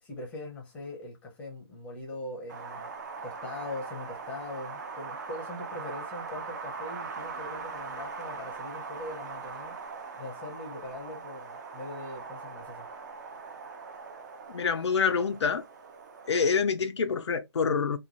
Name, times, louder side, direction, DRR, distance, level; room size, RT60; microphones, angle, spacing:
voice 1, 0.0-2.9 3.2-9.7 10.1-12.8, left 2 dB, 10° left, 0.6 m, -41 dB
Wind, 2.5-16.6, right 4 dB, 40° right, 0.6 m, -41 dB
voice 2, 14.5-15.6 16.3-18.0, left 5 dB, 80° left, 0.4 m, -26 dB
3.0 x 2.3 x 2.5 m
figure-of-eight pair, 145°, 14 cm